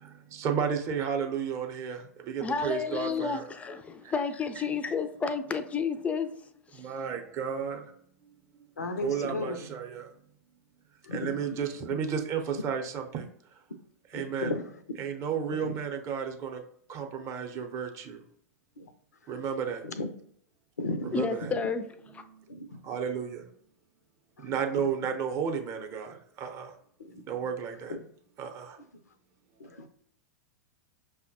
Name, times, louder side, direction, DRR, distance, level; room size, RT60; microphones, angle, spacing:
voice 1, 0.0-3.5 4.0-4.1 6.8-7.8 9.0-10.1 11.1-13.2 14.1-14.5 15.0-16.6 16.9-18.2 19.3-19.8 21.2-21.5 22.3-22.4 22.8-23.4 24.4-26.7 27.1-27.9 28.4-28.8, right 7 dB, 35° right, 0.6 m, -33 dB
voice 2, 2.4-6.3 6.7-6.9 21.1-21.8, left 5 dB, 15° left, 0.3 m, -31 dB
voice 3, 8.8-9.7 11.0-12.0 12.5-12.6 14.1-14.7 15.5-15.8 17.5-17.7 18.8-18.9 19.3-19.5 19.8-20.1 20.8-21.7 22.5-22.8 24.4-25.1 27.0-27.2 27.6-28.0 28.8-28.9 29.6-29.9, left 2 dB, 80° left, 0.4 m, -37 dB
5.6 x 2.1 x 2.7 m
figure-of-eight pair, 100°, 9 cm